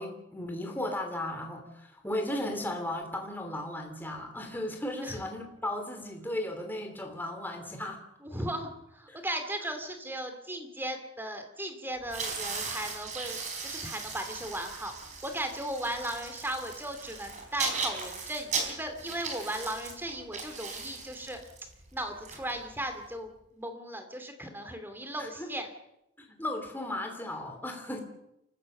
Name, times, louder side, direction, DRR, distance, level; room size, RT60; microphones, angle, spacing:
voice 1, 0.0-8.0 9.1-9.2 25.2-25.5 26.2-28.0, left 1 dB, 10° left, 3 dB, 2.8 m, -35 dB
voice 2, 8.2-21.4 21.9-25.7, right 1 dB, 10° right, 7 dB, 2.7 m, -37 dB
sound 1, 12.0-23.1, right 4 dB, 35° right, 4.2 m, -38 dB
28.0 x 15.5 x 6.7 m, 0.85 s
head